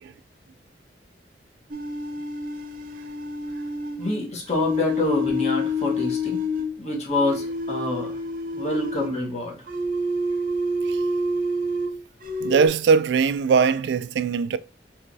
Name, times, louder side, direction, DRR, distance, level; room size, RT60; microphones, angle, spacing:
sound 1, 1.7-6.7 7.1-9.2 9.7-12.0 12.2-12.7, left 1 dB, 50° right, 0.7 m, -28 dB
voice 1, 4.0-6.4 6.8-8.1 8.5-9.6, left 1 dB, 40° left, 1.3 m, -26 dB
voice 2, 12.4-14.6, right 5 dB, 75° right, 0.3 m, -21 dB
5.3 x 3.1 x 2.7 m
head